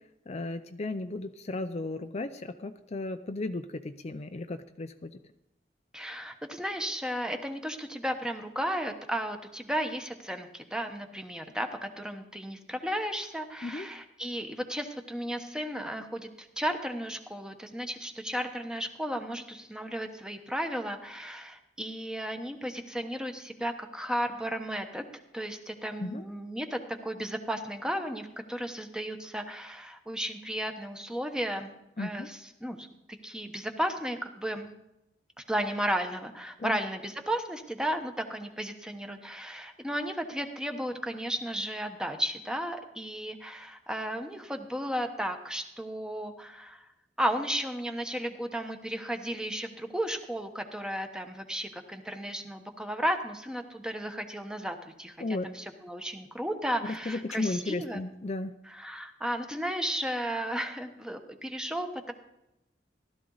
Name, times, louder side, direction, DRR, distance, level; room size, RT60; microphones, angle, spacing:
voice 1, 0.3-5.1 13.6-13.9 26.0-26.2 32.0-32.3 36.6-36.8 55.2-55.5 56.8-58.5, left 2 dB, 40° left, 8 dB, 0.5 m, -34 dB
voice 2, 5.9-25.0 25.3-31.7 32.0-32.9 33.2-34.7 35.4-46.8 47.2-55.1 55.4-58.0 58.6-62.1, equal, 5° right, 5 dB, 1.1 m, -34 dB
15.5 x 12.5 x 4.0 m, 0.89 s
head